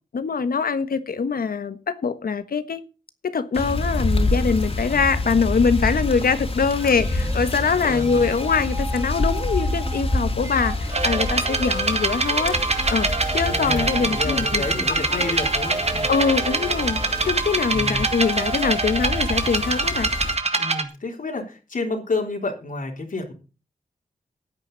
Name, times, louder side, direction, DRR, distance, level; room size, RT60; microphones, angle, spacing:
voice 1, 0.1-2.8 3.2-12.6 12.9-13.1 13.3-15.2 16.1-20.1, left 5 dB, 85° left, 12 dB, 1.4 m, -23 dB
sound 1, 3.5-20.4, left 2 dB, 40° left, 3.2 m, -28 dB
sound 2, 6.8-17.3, right 1 dB, 20° right, 1.9 m, -38 dB
voice 2, 7.8-8.3 13.6-16.1 17.7-18.1 20.5-23.3, left 3 dB, 65° left, 2 dB, 3.6 m, -30 dB
sound 3, 10.9-20.8, right 3 dB, 45° right, 1.8 m, -24 dB
16.0 x 9.1 x 4.0 m, 0.32 s
wide cardioid pair, 85°, 15 cm